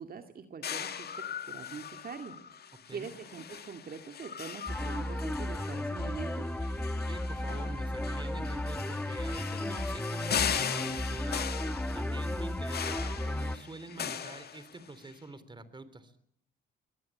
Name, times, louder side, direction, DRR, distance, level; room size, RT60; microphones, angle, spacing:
voice 1, 0.0-2.4 2.9-6.5, right 6 dB, 50° right, 6 dB, 2.2 m, -43 dB
sound 1, 0.6-15.1, left 8 dB, 55° left, 2.0 m, -39 dB
sound 2, 4.7-13.6, left 1 dB, 5° left, 1.4 m, -34 dB
voice 2, 7.1-11.4 11.9-16.1, right 2 dB, 25° right, 14 dB, 3.2 m, -46 dB
23.5 x 18.5 x 8.5 m, 0.68 s
cardioid pair, 90°, 20 cm